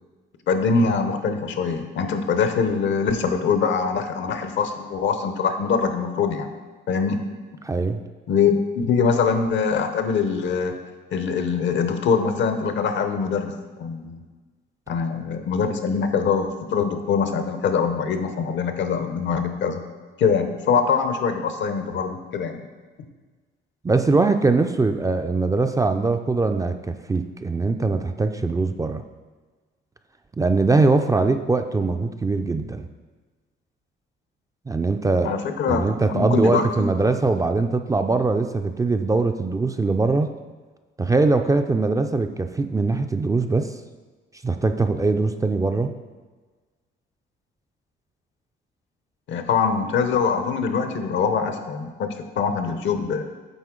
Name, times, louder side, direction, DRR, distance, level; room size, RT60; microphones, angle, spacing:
voice 1, 0.5-6.5 6.9-7.2 8.3-10.8 11.1-13.5 13.8-14.2 14.9-19.8 20.2-22.6 35.2-36.9 49.3-53.2, left 5 dB, 70° left, 7 dB, 0.7 m, -23 dB
voice 2, 7.6-8.0 23.8-29.0 30.4-32.8 34.7-35.3 35.7-40.3 41.0-43.8 44.4-45.9, right 3 dB, 15° right, 7 dB, 0.3 m, -22 dB
9.3 x 3.7 x 3.7 m, 1.4 s
cardioid pair, 90°, 20 cm